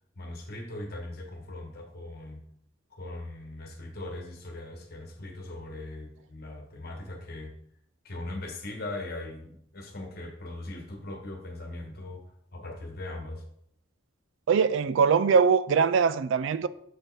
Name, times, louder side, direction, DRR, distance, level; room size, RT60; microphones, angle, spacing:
voice 1, 0.2-2.4 2.9-7.5 8.0-12.3 12.5-13.4, left 2 dB, 50° left, 1.3 m, -39 dB
voice 2, 14.5-16.7, right 6 dB, 60° right, 0.3 m, -22 dB
6.6 x 4.4 x 4.6 m
head